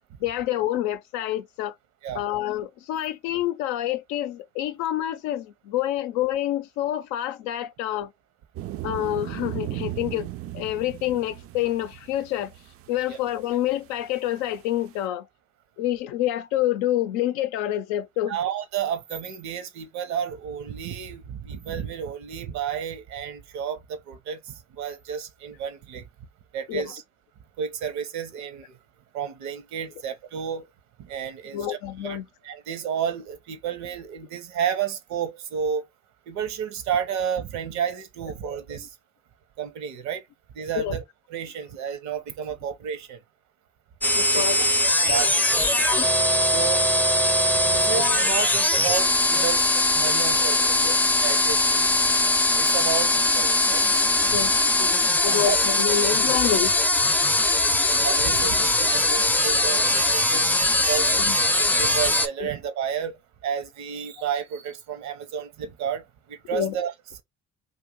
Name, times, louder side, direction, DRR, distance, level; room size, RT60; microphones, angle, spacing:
voice 1, 0.2-1.7 2.1-8.1 8.8-10.3 10.5-12.5 12.9-15.3 15.8-18.4 26.7-27.0 31.5-32.3 38.2-38.5 38.8-38.9 40.7-40.9 44.1-44.7 46.0-46.1 48.9-49.1 49.4-49.5 49.9-50.0 50.8-51.0 54.3-54.5 54.8-56.8 61.1-61.4 62.4-62.5 66.5-66.8, left 12 dB, 80° left, 0.5 m, -28 dB
sound 1, 8.6-14.0 14.3-14.4 14.6-14.7 14.9-15.0, right 14 dB, 50° right, 0.4 m, -36 dB
voice 2, 18.3-26.1 26.5-27.0 27.6-28.8 29.1-30.7 31.0-32.2 32.4-35.8 36.3-38.9 39.6-40.2 40.5-41.0 41.3-43.2 44.3-44.4 45.0-45.8 46.5-46.9 47.5-49.6 49.9-52.0 52.6-53.8 54.3-54.4 55.0-55.6 57.7-61.1 61.7-66.9, right 8 dB, 70° right, 0.8 m, -31 dB
sound 2, 44.0-62.3, left 2 dB, 5° left, 0.5 m, -21 dB
2.7 x 2.3 x 3.8 m
hypercardioid pair, 55°, 29 cm